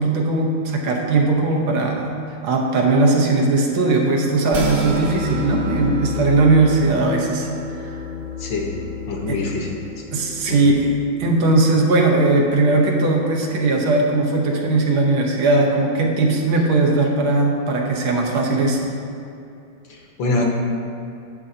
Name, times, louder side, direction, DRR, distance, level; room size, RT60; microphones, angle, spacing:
voice 1, 0.0-2.1 2.4-7.5 9.3-9.4 10.1-10.9 11.2-18.8, right 2 dB, 85° right, 0 dB, 1.8 m, -18 dB
sound 1, 4.5-11.0, left 3 dB, 55° right, 1.4 m, -30 dB
voice 2, 8.4-8.8 9.1-9.8 10.5-10.6 19.9-20.4, left 2 dB, 70° left, 0 dB, 1.8 m, -25 dB
10.5 x 8.6 x 2.8 m, 2.6 s
omnidirectional pair, 2.2 m